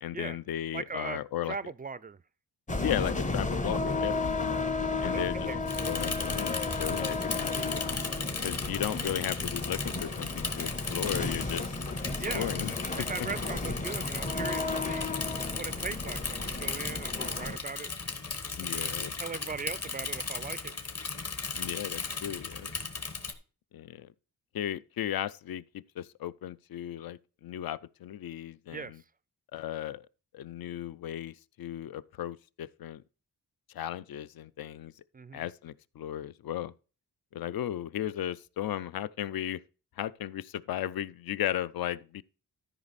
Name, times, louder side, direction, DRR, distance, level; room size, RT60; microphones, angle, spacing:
voice 1, 0.0-1.6 2.8-4.5 5.0-5.5 5.9-8.1 8.4-11.7 12.3-13.1 18.6-19.1 21.5-22.7 23.7-24.1 24.5-29.0 29.5-30.0 30.3-33.0 33.7-34.9 35.3-36.7 37.3-39.6 40.0-42.2, left 11 dB, 65° left, 0.5 m, -35 dB
voice 2, 0.7-2.2 5.1-6.0 12.2-12.5 12.9-15.1 15.5-17.9 18.6-18.9 19.2-20.7 28.7-28.9 35.1-35.4, right 5 dB, 25° right, 0.3 m, -39 dB
sound 1, 2.7-17.6, left 3 dB, 20° left, 0.7 m, -33 dB
Bicycle / Mechanisms, 5.7-23.3, left 4 dB, 40° left, 1.3 m, -36 dB
13.0 x 5.2 x 4.1 m
wide cardioid pair, 120°, 38 cm